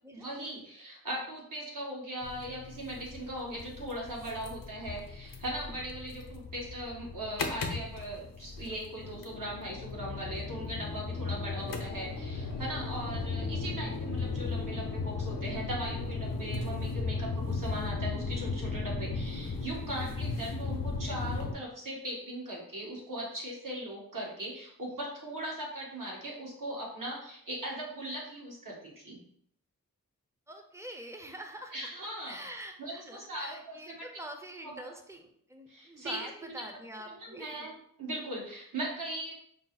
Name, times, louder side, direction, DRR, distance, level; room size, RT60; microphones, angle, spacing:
voice 1, 0.1-29.2 31.7-32.4 32.8-34.0 34.6-34.9 35.7-36.6 37.2-37.7 38.0-39.3, right 1 dB, 60° right, -3 dB, 1.6 m, -39 dB
sound 1, 2.2-21.5, left 4 dB, 65° left, 0.8 m, -36 dB
voice 2, 30.5-31.9 32.2-37.7, right 1 dB, 10° right, 4 dB, 0.7 m, -46 dB
5.2 x 2.1 x 4.0 m, 0.68 s
cardioid pair, 50°, 36 cm